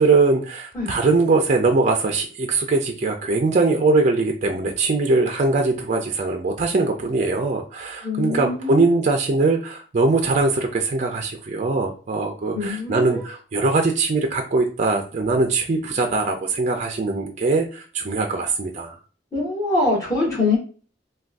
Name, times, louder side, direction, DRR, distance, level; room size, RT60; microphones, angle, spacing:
voice 1, 0.0-18.9, right 3 dB, 40° right, 3 dB, 0.4 m, -21 dB
voice 2, 8.0-9.0 12.5-13.3 19.3-20.6, left 3 dB, 20° left, -6 dB, 1.6 m, -24 dB
3.4 x 2.3 x 2.5 m, 0.39 s
head